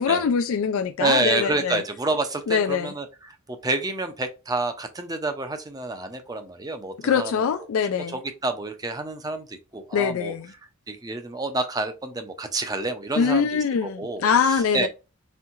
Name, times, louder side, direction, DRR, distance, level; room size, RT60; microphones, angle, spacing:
voice 1, 0.0-1.8 2.5-2.9 7.0-8.2 9.9-10.5 13.2-14.9, left 6 dB, 75° left, 0.3 m, -23 dB
voice 2, 1.0-7.7 8.1-10.3 10.9-14.9, right 2 dB, 20° right, 0.5 m, -29 dB
4.4 x 3.6 x 2.4 m
head